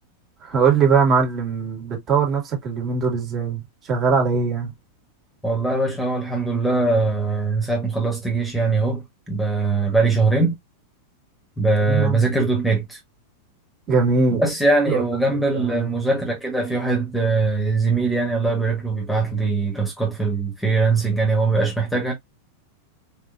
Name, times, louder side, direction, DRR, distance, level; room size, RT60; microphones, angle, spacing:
voice 1, 0.4-4.7 11.9-12.2 13.9-14.4 14.9-15.0 15.3-15.9, right 5 dB, 30° right, 2.1 m, -21 dB
voice 2, 5.4-10.6 11.6-13.0 14.3-22.1, right 3 dB, ahead, 1.4 m, -21 dB
4.1 x 3.6 x 2.6 m
figure-of-eight pair, 90°, 0 cm